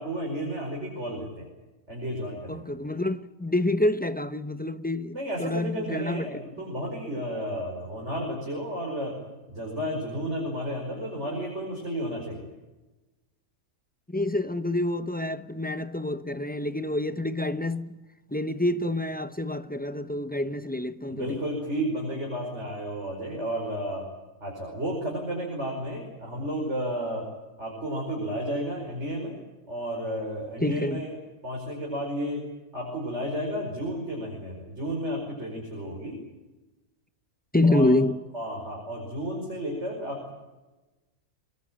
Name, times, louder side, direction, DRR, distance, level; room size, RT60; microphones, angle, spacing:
voice 1, 0.0-1.5 1.9-2.8 5.1-9.2 9.5-12.5 21.1-24.1 24.4-27.3 27.6-29.4 29.7-31.2 31.4-32.5 32.7-36.2 37.6-37.9 38.3-40.3, equal, 50° right, 5.6 m, -32 dB
voice 2, 2.5-6.4 14.1-18.0 18.3-21.4 30.6-31.0 37.5-38.2, left 1 dB, 10° left, 0.5 m, -27 dB
24.0 x 20.5 x 8.8 m
omnidirectional pair, 1.5 m